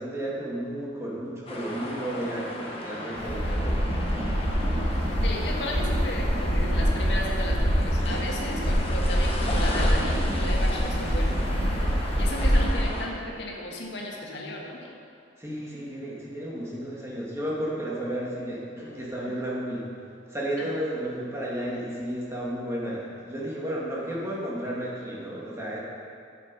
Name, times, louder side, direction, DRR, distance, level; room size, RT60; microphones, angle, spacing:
voice 1, 0.0-3.8 15.4-19.9 20.3-25.8, right 1 dB, 15° right, -6 dB, 2.0 m, -33 dB
sound 1, 1.5-13.1, left 1 dB, 30° left, 1.1 m, -35 dB
sound 2, 3.2-12.7, equal, 30° right, 2.1 m, -25 dB
voice 2, 5.2-11.4 12.2-14.9 19.3-19.4 20.6-20.7, left 1 dB, 65° left, -1 dB, 1.7 m, -35 dB
11.0 x 7.6 x 5.4 m, 2.4 s
head